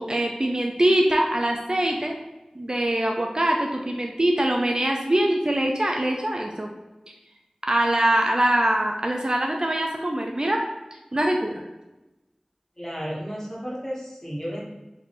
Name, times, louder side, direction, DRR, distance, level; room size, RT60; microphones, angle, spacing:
voice 1, 0.0-2.2 2.6-6.7 7.6-10.6 11.1-11.6, right 1 dB, 40° right, 1 dB, 0.4 m, -23 dB
voice 2, 12.8-14.6, equal, 20° left, -5 dB, 1.3 m, -33 dB
3.4 x 2.6 x 4.1 m, 1.0 s
wide cardioid pair, 50°, 2 cm